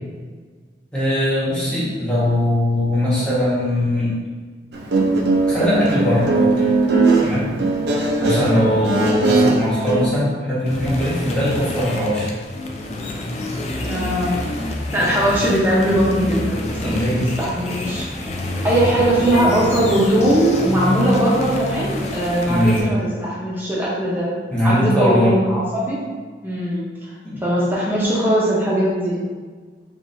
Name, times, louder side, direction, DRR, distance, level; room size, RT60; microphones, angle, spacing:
voice 1, 0.9-4.2 5.5-6.6 7.2-7.5 8.2-12.3 16.8-17.3 22.5-22.8 24.5-25.4 27.2-27.4, left 1 dB, 5° left, -10 dB, 1.3 m, -20 dB
Guitar, 4.7-10.0, right 3 dB, 70° right, 0.5 m, -19 dB
sound 1, 10.6-22.8, left 1 dB, 40° left, 0.4 m, -27 dB
voice 2, 13.8-14.4 14.9-16.9 17.2-18.0 18.6-24.3 24.6-26.0 26.4-27.1 27.4-29.2, right 1 dB, 10° right, -6 dB, 0.9 m, -20 dB
4.9 x 2.6 x 2.6 m, 1.5 s
head